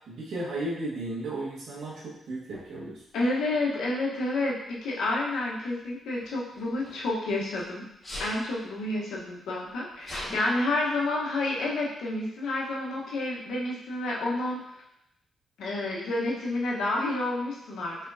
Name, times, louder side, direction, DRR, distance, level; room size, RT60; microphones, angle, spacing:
voice 1, 0.1-3.0, right 2 dB, 75° right, -5 dB, 1.5 m, -34 dB
Sneeze, 2.5-2.7 3.8-4.1 6.2-7.6 8.0-8.4 9.1-9.2 9.4-10.4, left 1 dB, 20° left, 1.6 m, -40 dB
voice 2, 3.1-7.8 8.2-14.6 15.6-18.0, left 2 dB, 85° left, -4 dB, 1.1 m, -29 dB
4.4 x 4.2 x 2.7 m, 0.81 s
cardioid pair, 105°, 0 cm